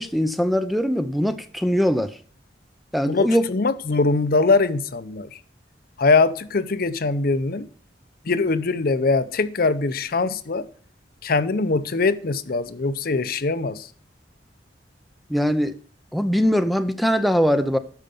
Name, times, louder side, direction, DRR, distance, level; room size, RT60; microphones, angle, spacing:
voice 1, 0.0-2.2 2.9-3.5 15.3-15.8 16.1-17.8, equal, ahead, 0.6 m, -21 dB
voice 2, 3.1-5.3 6.0-7.7 8.3-10.7 11.2-13.9, left 3 dB, 55° left, 0.7 m, -22 dB
12.0 x 5.2 x 6.9 m
head